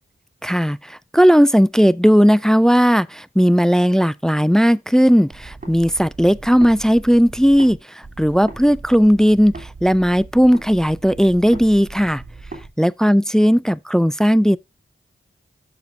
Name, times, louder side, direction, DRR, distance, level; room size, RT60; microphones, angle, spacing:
voice 1, 0.4-12.2 12.8-14.6, equal, 5° left, 0.4 m, -16 dB
sound 1, 5.3-7.8 8.0-12.7, right 3 dB, 40° right, 3.1 m, -38 dB
9.2 x 7.0 x 2.7 m
cardioid pair, 60°, 21 cm